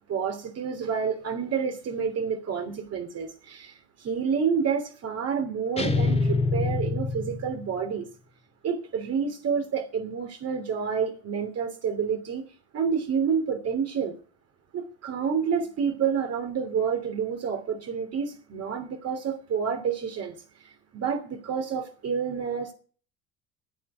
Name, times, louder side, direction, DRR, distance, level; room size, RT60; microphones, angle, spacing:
voice 1, 0.1-8.1 8.6-12.4 12.7-14.2 14.7-20.3 20.6-22.7, right 6 dB, 45° right, 4 dB, 3.1 m, -29 dB
sound 1, 5.8-7.8, left 3 dB, 15° left, 2.4 m, -26 dB
9.3 x 9.0 x 9.5 m, 0.41 s
hypercardioid pair, 75°, 35 cm